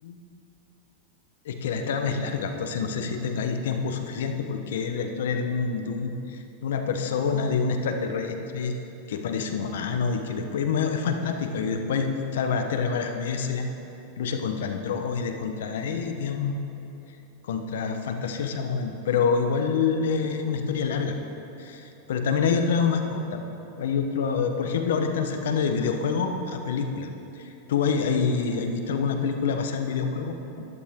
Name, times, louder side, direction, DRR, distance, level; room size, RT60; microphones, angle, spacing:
voice 1, 1.4-8.8 9.1-13.7 14.2-16.6 17.4-21.2 21.6-23.4 23.8-27.1 27.4-30.6, left 5 dB, 80° left, 6 dB, 1.1 m, -27 dB
12.0 x 11.5 x 3.8 m, 2.9 s
hypercardioid pair, 120°, 0 cm